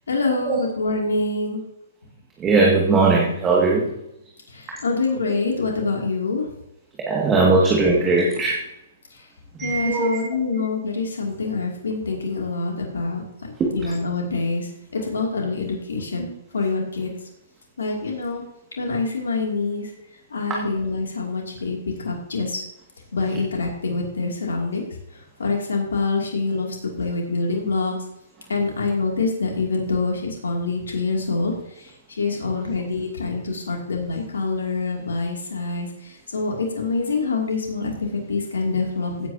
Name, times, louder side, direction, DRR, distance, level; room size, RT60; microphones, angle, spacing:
voice 1, 0.1-1.6 4.5-6.4 7.6-7.7 9.6-13.2 13.7-17.1 17.8-18.4 18.8-19.9 20.3-22.6 23.1-24.9 25.4-26.7 27.0-27.9 28.5-31.5 32.2-35.9 36.3-39.3, left 3 dB, 80° left, 0 dB, 2.7 m, -25 dB
voice 2, 2.4-3.9 7.1-8.6 9.6-10.2 10.5-10.6 13.6-13.7, right 3 dB, 20° right, -2 dB, 2.1 m, -19 dB
16.5 x 8.5 x 2.9 m, 0.82 s
hypercardioid pair, 130°, 0 cm